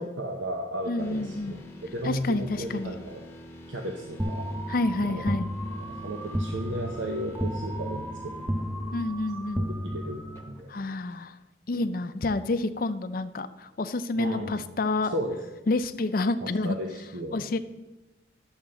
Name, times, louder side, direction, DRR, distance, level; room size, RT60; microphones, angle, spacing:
voice 1, 0.0-1.6 1.9-3.2 3.7-4.5 5.0-5.2 5.8-8.6 9.6-10.2 10.5-10.8 11.7-11.9 14.2-14.6 15.1-15.4 16.4-17.5, right 1 dB, 85° right, 2 dB, 0.9 m, -34 dB
voice 2, 0.9-1.6 2.0-3.0 4.7-5.5 8.9-9.7 10.7-11.4 11.7-15.1 15.7-16.8 17.3-17.6, left 2 dB, 50° left, 11 dB, 0.5 m, -28 dB
sound 1, 1.0-11.0, equal, 15° left, 1.0 m, -46 dB
sound 2, 4.2-10.6, equal, 10° right, 0.4 m, -33 dB
11.0 x 7.1 x 3.8 m, 1.1 s
head